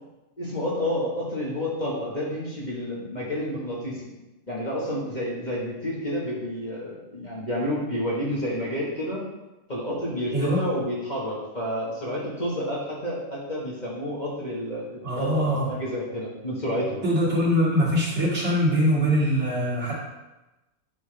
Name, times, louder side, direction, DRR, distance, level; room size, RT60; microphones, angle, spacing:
voice 1, 0.4-4.0 4.5-9.2 9.7-17.0, equal, 30° left, -5 dB, 1.7 m, -30 dB
voice 2, 15.0-15.7 17.0-19.9, equal, 55° right, -8 dB, 2.8 m, -23 dB
9.3 x 6.0 x 3.4 m, 1.0 s
omnidirectional pair, 1.5 m